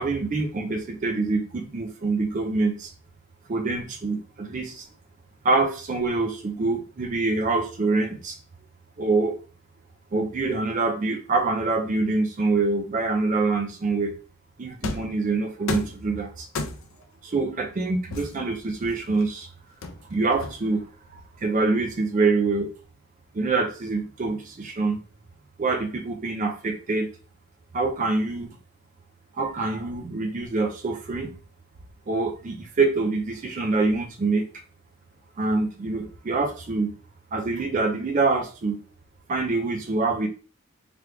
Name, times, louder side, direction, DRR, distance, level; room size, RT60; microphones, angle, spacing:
voice 1, 0.0-2.9 3.5-4.9 5.4-8.4 9.0-9.4 10.1-14.1 14.6-16.5 17.2-19.5 20.1-20.8 21.1-22.7 23.3-25.0 25.6-27.1 27.7-28.5 29.4-31.3 32.1-34.5 35.4-36.9 37.3-38.8 39.3-40.3, right 3 dB, 35° right, 4 dB, 0.4 m, -25 dB
sound 1, 14.8-15.2 15.7-16.0 16.5-17.0 18.1-19.2 19.8-20.8, left 3 dB, 65° left, 0.5 m, -33 dB
3.4 x 2.3 x 3.1 m, 0.37 s
head